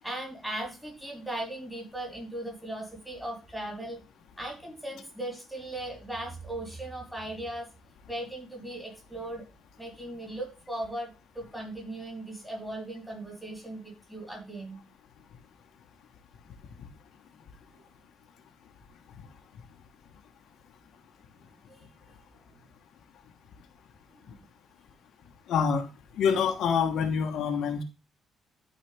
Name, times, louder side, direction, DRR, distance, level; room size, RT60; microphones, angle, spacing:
voice 1, 0.0-4.0 4.4-7.7 8.1-9.4 9.8-14.8 17.7-17.8 21.4-22.2 22.5-22.6 24.2-24.3, right 1 dB, 5° right, 0 dB, 3.9 m, -38 dB
voice 2, 25.5-25.9 26.2-27.8, left 6 dB, 65° left, 4 dB, 1.2 m, -26 dB
11.5 x 4.9 x 3.4 m, 0.30 s
cardioid pair, 150°, 0 cm